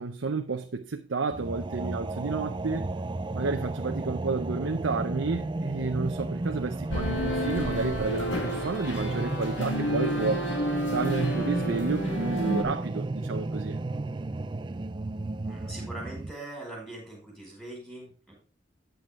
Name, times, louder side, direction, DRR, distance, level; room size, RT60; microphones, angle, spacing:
voice 1, 0.0-2.9 3.3-10.5 10.9-13.8, right 4 dB, 75° right, 0.7 m, -31 dB
sound 1, 1.3-16.3, right 2 dB, 25° right, 0.4 m, -33 dB
sound 2, 6.9-12.6, equal, 65° left, 1.8 m, -30 dB
voice 2, 15.4-18.3, right 2 dB, 5° left, 5.2 m, -42 dB
9.3 x 7.7 x 3.7 m
head